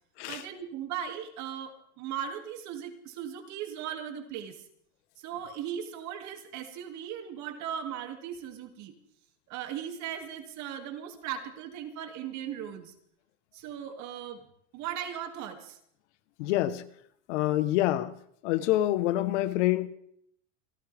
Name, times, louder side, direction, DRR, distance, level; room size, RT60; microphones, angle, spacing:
voice 1, 0.2-4.6 5.2-8.9 9.5-12.9 13.5-14.4 14.7-15.8, right 9 dB, 50° right, 2.7 m, -38 dB
voice 2, 16.4-16.8 17.3-18.1 18.4-19.9, left 14 dB, 65° left, 1.3 m, -26 dB
28.0 x 12.0 x 3.5 m
supercardioid pair, 120°, 37 cm